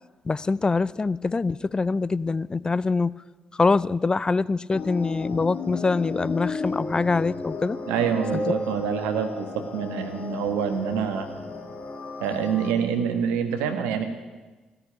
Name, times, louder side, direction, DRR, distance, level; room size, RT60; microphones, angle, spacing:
voice 1, 0.2-3.1 3.6-7.8 8.3-8.4, left 3 dB, 30° left, 20 dB, 0.4 m, -24 dB
sound 1, 4.7-12.7, left 3 dB, 55° left, 2.0 m, -34 dB
voice 2, 7.9-11.3 12.2-14.0, right 7 dB, 85° right, 7 dB, 1.4 m, -26 dB
16.5 x 6.9 x 9.9 m, 1.2 s
hypercardioid pair, 45°, 3 cm